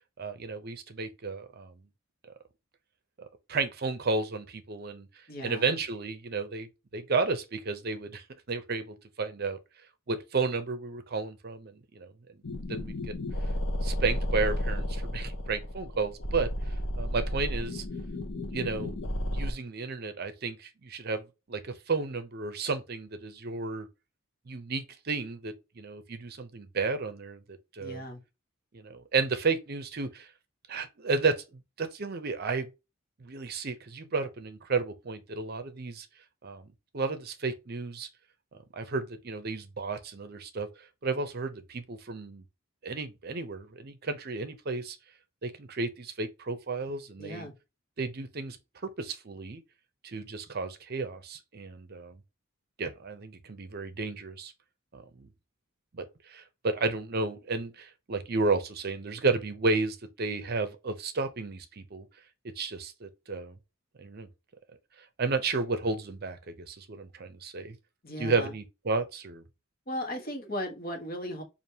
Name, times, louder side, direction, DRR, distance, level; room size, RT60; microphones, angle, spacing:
voice 1, 0.2-1.8 3.2-9.6 10.1-12.1 12.7-13.1 13.8-17.8 18.5-19.0 19.3-23.9 24.5-27.4 27.7-28.0 28.7-30.3 30.7-32.7 33.2-36.1 36.4-36.7 36.9-38.1 38.7-42.4 42.8-45.0 45.4-47.5 48.0-48.6 48.8-49.6 50.0-52.2 52.8-54.5 54.9-55.3 55.9-62.1 62.4-63.6 64.0-64.3 65.2-67.8 68.2-69.4, right 4 dB, 50° right, 0.6 m, -32 dB
voice 2, 5.3-5.7 27.8-28.2 47.2-47.5 68.0-68.5 69.9-71.4, equal, 45° left, 1.2 m, -36 dB
sound 1, 12.4-19.5, equal, 65° left, 0.8 m, -32 dB
5.1 x 2.5 x 2.8 m
head